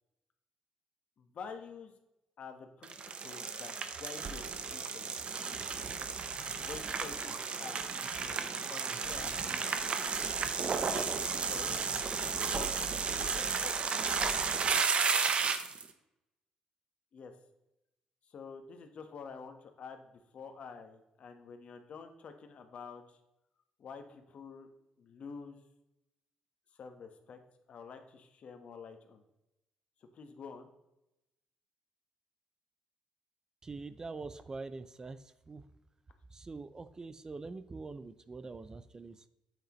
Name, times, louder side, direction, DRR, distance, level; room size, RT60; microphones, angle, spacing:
voice 1, 1.2-1.9 2.4-5.1 6.5-7.9 8.7-9.3 10.9-11.9 12.5-14.3 17.1-17.3 18.3-23.2 23.8-24.7 25.0-25.6 26.8-27.4 27.7-29.2 30.1-30.7, left 5 dB, 55° left, 6 dB, 1.3 m, -48 dB
sound 1, 2.8-15.8, right 5 dB, 50° right, 0.9 m, -33 dB
voice 2, 33.6-35.2 35.5-35.6 36.3-39.3, right 3 dB, 25° right, 13 dB, 0.5 m, -44 dB
9.0 x 8.1 x 3.1 m, 0.91 s
cardioid pair, 90°, 2 cm